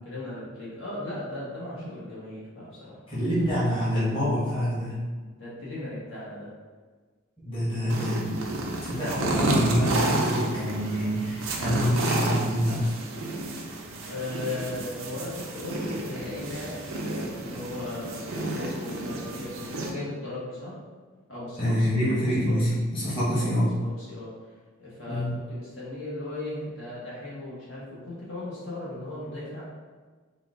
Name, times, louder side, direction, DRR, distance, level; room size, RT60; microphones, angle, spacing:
voice 1, 0.0-3.0 5.4-6.5 13.6-13.7 14.0-20.8 21.3-22.0 22.5-22.6 23.3-24.3 24.8-29.6, left 2 dB, 65° left, -8 dB, 1.5 m, -37 dB
voice 2, 3.1-5.1 7.4-8.4 8.8-12.9 21.6-23.7 25.1-25.4, equal, 25° left, -10 dB, 1.2 m, -26 dB
sound 1, 7.9-19.9, right 2 dB, 80° right, 0.6 m, -31 dB
4.2 x 2.5 x 3.7 m, 1.4 s
head